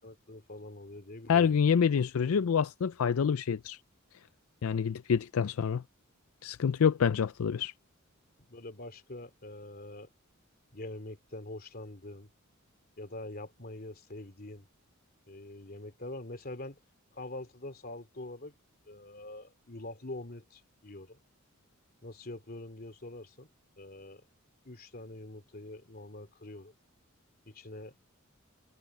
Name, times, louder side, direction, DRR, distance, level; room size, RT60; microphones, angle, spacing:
voice 1, 0.0-1.5 8.5-10.1 10.7-12.3 13.0-14.6 15.3-16.8 17.1-18.5 18.9-21.2 22.0-23.5 23.8-24.2 24.6-26.7 27.4-28.0, left 2 dB, 45° left, 3.0 m, -44 dB
voice 2, 1.3-3.8 4.6-5.8 6.4-7.7, left 7 dB, 80° left, 0.4 m, -27 dB
head